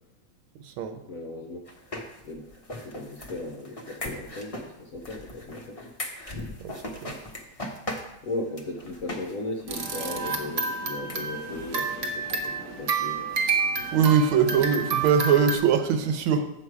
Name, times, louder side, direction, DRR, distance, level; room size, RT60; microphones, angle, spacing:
voice 1, 0.5-1.0 6.6-7.2 13.9-16.5, right 7 dB, 80° right, 7 dB, 1.7 m, -22 dB
voice 2, 1.1-1.6 2.2-2.5 2.8-5.8 8.2-13.3 14.4-14.6, left 2 dB, 60° left, 1 dB, 0.9 m, -37 dB
sound 1, 1.7-9.3 9.6-9.7 10.1-10.2 10.6-10.7 11.0-11.2 11.5-11.6 12.0-12.1 12.4-12.5, left 1 dB, 35° left, 0.5 m, -38 dB
sound 2, 9.7-15.6, right 4 dB, 50° right, 1.1 m, -29 dB
8.2 x 7.0 x 4.8 m, 0.85 s
omnidirectional pair, 2.3 m